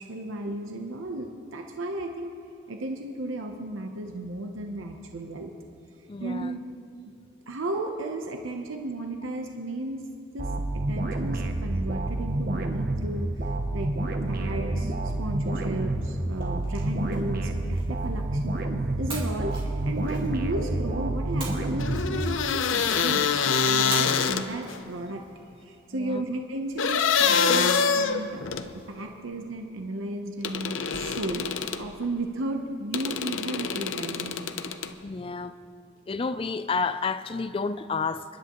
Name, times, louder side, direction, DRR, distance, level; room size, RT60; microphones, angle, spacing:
voice 1, 0.0-2.3 2.7-5.5 6.2-6.6 7.5-10.1 10.3-10.5 10.9-13.9 14.3-14.9 15.2-18.6 19.0-23.3 23.7-25.2 25.6-28.4 28.9-34.5, right 2 dB, 85° right, 0.8 m, -34 dB
voice 2, 6.1-6.5 19.1-19.2 25.9-26.2 35.0-35.6 36.1-38.2, left 4 dB, 25° left, 0.3 m, -30 dB
sound 1, 10.4-22.7, right 1 dB, 50° right, 0.9 m, -29 dB
sound 2, 16.3-18.6 19.1-20.7 21.4-22.8 23.9-25.2, right 3 dB, 25° right, 2.5 m, -42 dB
sound 3, 21.8-24.8 26.8-28.7 30.4-31.9 32.9-34.9, left 6 dB, 80° left, 0.6 m, -25 dB
28.0 x 10.5 x 3.0 m
head